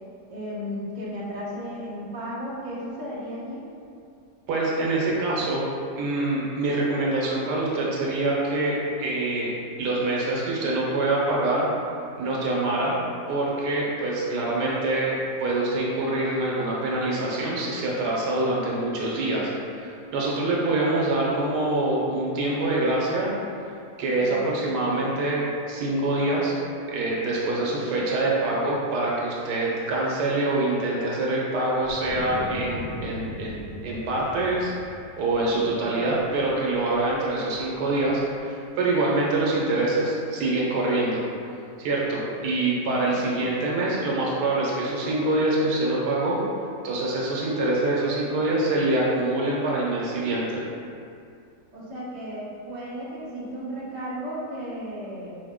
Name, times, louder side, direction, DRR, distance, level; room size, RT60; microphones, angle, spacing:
voice 1, 0.3-3.7 24.1-25.1 27.6-28.0 35.5-36.1 51.7-55.3, equal, 40° right, -7 dB, 0.6 m, -35 dB
voice 2, 4.5-5.7 6.0-9.5 9.8-11.7 12.2-13.0 13.3-23.3 24.0-26.5 26.9-34.7 35.2-41.2 41.8-46.4 46.8-50.6, right 2 dB, 85° right, -5 dB, 1.4 m, -25 dB
Wind, 31.8-38.3, equal, 65° left, 1.3 m, -40 dB
4.6 x 2.1 x 3.6 m, 2.5 s
omnidirectional pair, 1.7 m